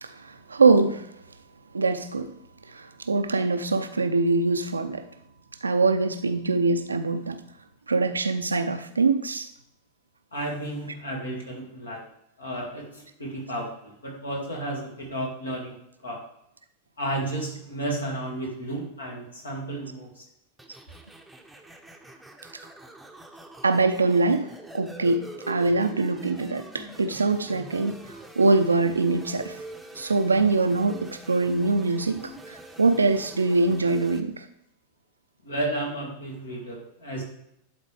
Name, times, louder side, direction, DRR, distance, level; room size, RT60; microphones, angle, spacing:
voice 1, 0.0-1.1 1.7-2.3 2.7-5.0 5.6-7.4 7.9-9.5 23.6-24.5 24.7-25.2 25.5-28.0 28.4-29.6 30.0-34.4, right 3 dB, 75° right, 9 dB, 0.5 m, -23 dB
voice 2, 10.3-12.1 12.4-15.8 16.0-16.2 17.0-20.2 35.4-37.2, right 1 dB, 75° left, -1 dB, 2.1 m, -32 dB
sound 1, 20.6-34.2, right 2 dB, ahead, 0.8 m, -44 dB
11.0 x 4.0 x 3.3 m, 0.79 s
figure-of-eight pair, 90°, 0 cm